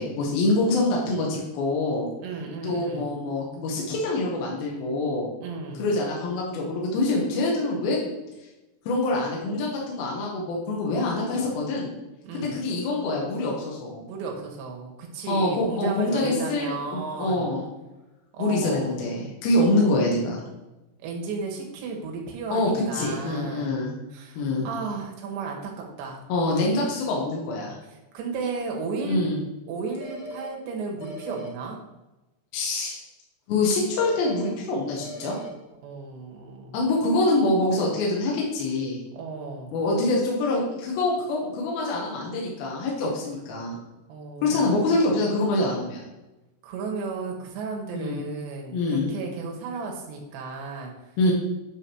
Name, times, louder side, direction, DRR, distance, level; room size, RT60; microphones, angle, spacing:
voice 1, 0.0-2.1 2.6-5.3 5.8-8.0 8.9-11.9 12.3-14.0 15.3-17.7 18.4-20.4 22.5-23.9 24.4-24.7 26.3-27.8 29.1-29.4 32.5-33.0 33.5-35.4 36.7-39.0 39.7-43.8 44.4-46.0 47.9-48.2 48.7-49.1 51.2-51.3, left 2 dB, 70° left, -3 dB, 3.1 m, -25 dB
voice 2, 2.2-3.1 5.4-5.9 12.2-12.6 14.1-17.5 18.3-19.0 19.6-20.0 21.0-23.8 24.1-26.2 27.8-29.2 29.7-31.8 35.8-36.8 39.1-39.7 44.1-44.7 46.6-51.3, right 4 dB, 85° right, 0 dB, 3.4 m, -34 dB
sound 1, 30.0-30.5 31.0-31.5 34.0-34.5 35.0-35.5, equal, 85° left, 4.0 m, -38 dB
9.8 x 3.7 x 6.2 m, 1.0 s
omnidirectional pair, 4.8 m